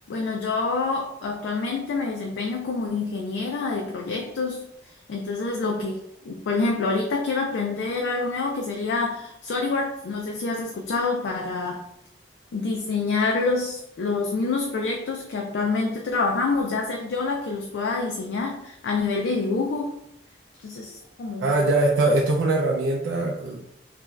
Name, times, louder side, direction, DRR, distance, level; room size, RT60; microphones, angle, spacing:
voice 1, 0.1-11.8 12.5-20.0 20.6-21.5, left 3 dB, 85° left, 1 dB, 0.3 m, -27 dB
voice 2, 21.4-23.6, right 2 dB, 90° right, -2 dB, 0.4 m, -22 dB
2.4 x 2.2 x 3.1 m, 0.80 s
head